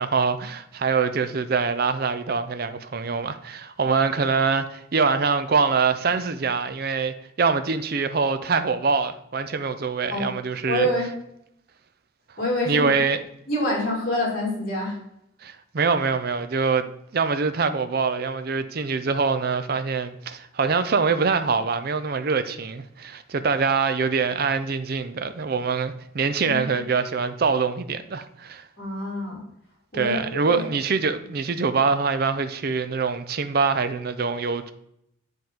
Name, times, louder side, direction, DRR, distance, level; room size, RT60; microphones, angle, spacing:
voice 1, 0.0-10.9 12.7-13.2 15.4-16.9 17.1-28.7 29.9-34.7, right 5 dB, 50° right, 0.5 m, -24 dB
voice 2, 10.6-11.1 12.4-12.9 13.5-15.0 26.4-26.6 28.8-29.4 29.9-30.2 30.4-30.7, left 1 dB, 45° left, 2.2 m, -26 dB
10.0 x 3.7 x 3.6 m
head